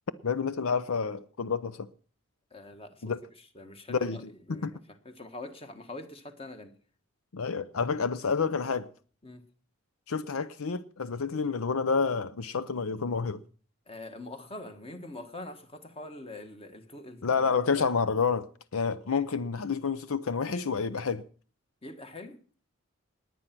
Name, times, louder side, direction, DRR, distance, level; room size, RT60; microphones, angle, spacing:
voice 1, 0.2-1.9 3.0-3.2 3.9-4.7 7.3-8.9 10.1-13.4 17.2-21.2, left 5 dB, 80° left, 0.6 m, -29 dB
voice 2, 2.5-3.0 3.5-4.2 4.5-4.8 5.0-6.7 9.2-9.4 13.9-17.2 17.7-17.9 21.8-22.4, left 2 dB, 25° left, 1.5 m, -43 dB
20.0 x 9.1 x 6.0 m
head